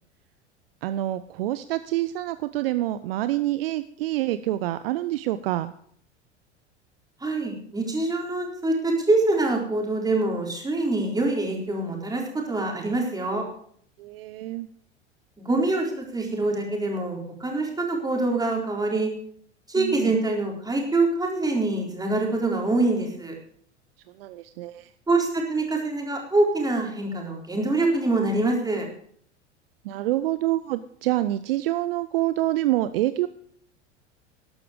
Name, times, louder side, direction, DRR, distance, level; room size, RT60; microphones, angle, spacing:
voice 1, 0.8-5.7 14.0-14.7 19.8-20.1 24.2-24.9 29.8-33.3, right 15 dB, 55° right, 13 dB, 0.7 m, -27 dB
voice 2, 7.2-13.5 15.4-19.1 19.7-23.4 25.1-28.9, right 2 dB, 10° right, 0 dB, 4.1 m, -25 dB
13.5 x 11.5 x 5.2 m, 0.62 s
figure-of-eight pair, 80°, 35 cm